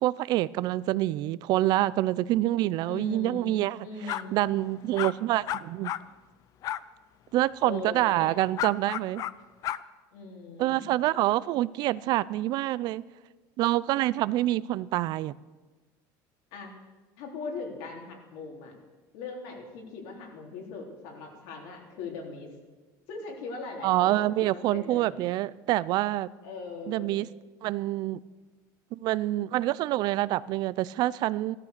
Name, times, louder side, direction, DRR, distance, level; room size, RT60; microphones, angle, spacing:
voice 1, 0.0-6.0 7.3-9.2 10.6-13.0 13.6-15.3 23.8-26.3 26.9-27.3 27.6-28.2 28.9-31.6, right 15 dB, 55° right, 0.4 m, -26 dB
voice 2, 2.9-4.5 7.6-8.4 10.1-10.8 16.5-16.7 17.2-18.7 19.1-22.5 23.1-25.3 26.4-27.2, left 3 dB, 75° left, 3.7 m, -40 dB
sound 1, 4.1-4.2 4.9-5.1 5.5-6.0 6.6-6.8 8.6-9.3 9.6-9.8, left 12 dB, 45° left, 0.5 m, -31 dB
15.5 x 13.5 x 6.7 m
cardioid pair, 150°, 9 cm